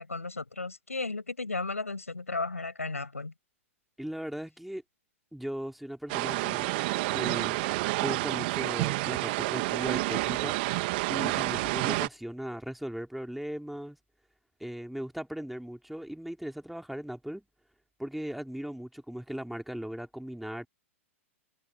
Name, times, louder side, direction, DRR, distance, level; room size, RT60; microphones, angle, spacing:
voice 1, 0.0-3.3, left 3 dB, 90° left, 6.8 m, -34 dB
voice 2, 4.0-4.8 5.3-6.7 7.1-7.6 8.0-10.6 11.1-14.0 14.6-17.4 18.0-20.7, equal, ahead, 2.7 m, -38 dB
sound 1, 6.1-12.1, right 24 dB, 45° right, 1.7 m, -29 dB
figure-of-eight pair, 110°, 7 cm